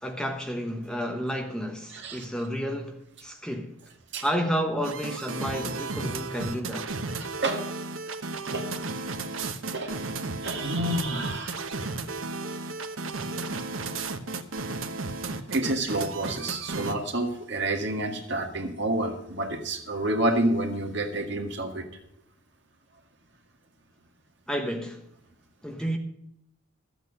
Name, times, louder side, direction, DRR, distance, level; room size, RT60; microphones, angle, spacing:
voice 1, 0.0-3.8 4.2-6.9 14.7-14.8 24.5-25.0 25.6-26.0, equal, 5° left, 1.0 m, -31 dB
voice 2, 1.9-2.2 4.1-4.2 7.2-7.6 8.5-8.7 9.7-9.9 10.4-11.6 15.5-21.9, right 1 dB, 55° right, 2.0 m, -29 dB
sound 1, 4.8-17.0, right 3 dB, 75° right, 1.1 m, -34 dB
13.5 x 8.2 x 6.5 m
head